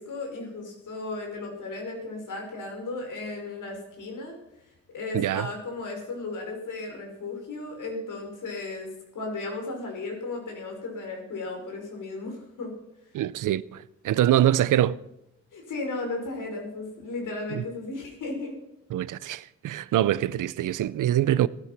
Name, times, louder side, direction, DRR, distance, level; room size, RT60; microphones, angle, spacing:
voice 1, 0.0-4.4 4.9-12.7 15.5-18.6, left 3 dB, 80° left, 5.3 m, -35 dB
voice 2, 5.1-5.5 13.1-15.0 17.5-17.6 18.9-21.5, right 12 dB, 90° right, 0.6 m, -24 dB
16.0 x 13.0 x 5.9 m
cardioid pair, 80°, 31 cm